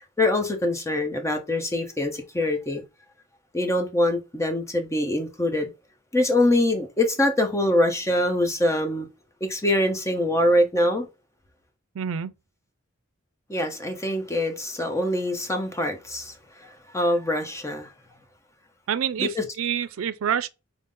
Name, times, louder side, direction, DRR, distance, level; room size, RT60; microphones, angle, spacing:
voice 1, 0.0-2.8 3.5-5.7 6.1-9.1 9.4-11.1 13.5-17.9 19.2-19.4, left 1 dB, 15° left, 0.8 m, -24 dB
voice 2, 12.0-12.3 18.9-20.5, right 8 dB, 85° right, 0.4 m, -27 dB
5.4 x 2.1 x 3.7 m
head